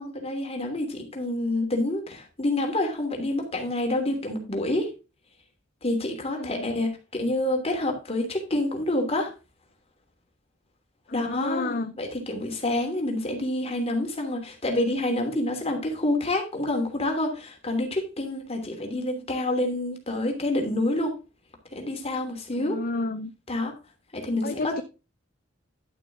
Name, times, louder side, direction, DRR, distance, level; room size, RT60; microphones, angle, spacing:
voice 1, 0.0-4.9 5.8-9.3 11.1-21.1 21.7-22.8 23.5-23.7 24.1-24.8, left 1 dB, 30° left, 3 dB, 3.0 m, -28 dB
voice 2, 6.2-6.7 11.1-11.9 22.5-23.3 24.4-24.8, left 3 dB, 50° left, 9 dB, 0.7 m, -31 dB
11.5 x 7.0 x 3.6 m, 0.30 s
head